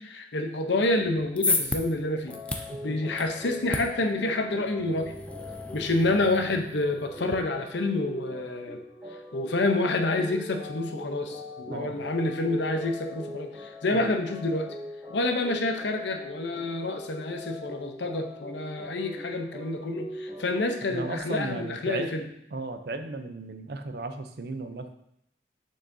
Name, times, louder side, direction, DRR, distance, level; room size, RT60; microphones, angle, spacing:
voice 1, 0.0-5.1 5.7-8.8 9.3-14.7 15.1-22.2, left 2 dB, 80° left, 5 dB, 0.7 m, -28 dB
sound 1, 1.0-7.3, left 2 dB, 5° left, 0.3 m, -34 dB
sound 2, 2.2-21.2, left 1 dB, 25° right, 2.2 m, -41 dB
voice 2, 2.7-3.0 11.7-12.0 13.9-14.1 20.9-22.2 22.5-24.9, right 3 dB, 60° right, 8 dB, 0.5 m, -35 dB
6.6 x 6.1 x 2.7 m, 0.74 s
head